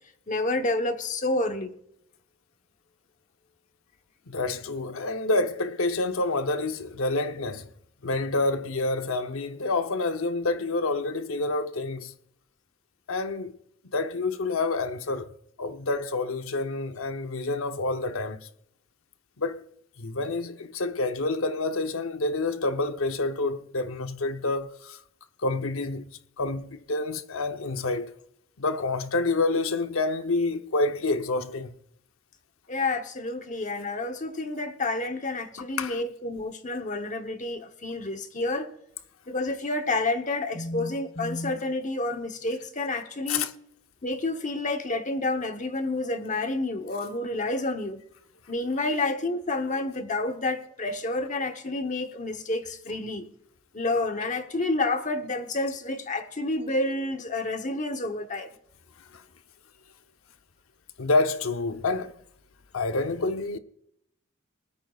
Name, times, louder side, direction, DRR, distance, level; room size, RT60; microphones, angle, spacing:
voice 1, 0.3-1.7 32.7-38.7 39.3-43.5 44.0-48.0 48.5-53.3 53.7-58.5, left 2 dB, 35° left, 1.0 m, -29 dB
voice 2, 4.3-7.7 8.0-12.1 13.1-13.5 13.9-15.3 15.6-18.4 19.4-19.6 20.0-25.0 25.4-26.1 26.4-28.1 28.6-31.7 35.6-36.0 43.3-43.5 59.1-59.2 61.0-62.2 62.7-63.6, left 3 dB, 75° left, 0.8 m, -28 dB
19.5 x 13.5 x 2.4 m
head